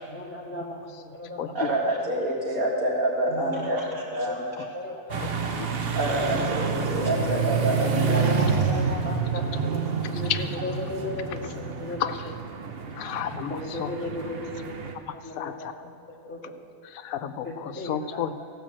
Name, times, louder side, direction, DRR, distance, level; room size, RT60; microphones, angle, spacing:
voice 1, 0.1-1.7 3.3-4.4 4.7-6.5 8.0-12.1 13.5-14.8 15.1-16.5 17.4-18.4, left 1 dB, 10° left, -3 dB, 1.4 m, -36 dB
voice 2, 1.5-4.4 5.9-8.8, right 1 dB, 85° right, -3 dB, 2.5 m, -27 dB
sound 1, 5.1-14.9, right 5 dB, 50° right, 0.9 m, -28 dB
voice 3, 12.9-13.9 15.4-15.7 16.9-18.3, left 9 dB, 85° left, 10 dB, 1.0 m, -31 dB
16.0 x 5.4 x 7.4 m, 2.5 s
omnidirectional pair, 1.4 m